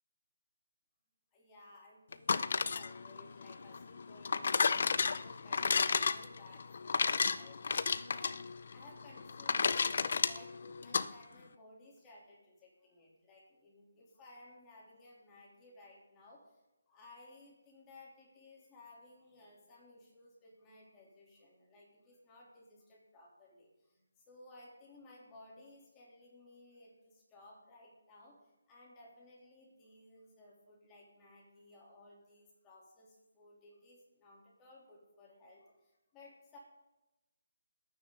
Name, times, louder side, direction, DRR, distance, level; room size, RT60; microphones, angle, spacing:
voice 1, 1.3-16.4 16.9-28.4 28.7-36.6, left 2 dB, 15° left, -4 dB, 3.3 m, -58 dB
sound 1, 2.1-11.1, left 5 dB, 50° left, 0.6 m, -32 dB
21.0 x 9.3 x 3.9 m, 1.0 s
hypercardioid pair, 165°, 0 cm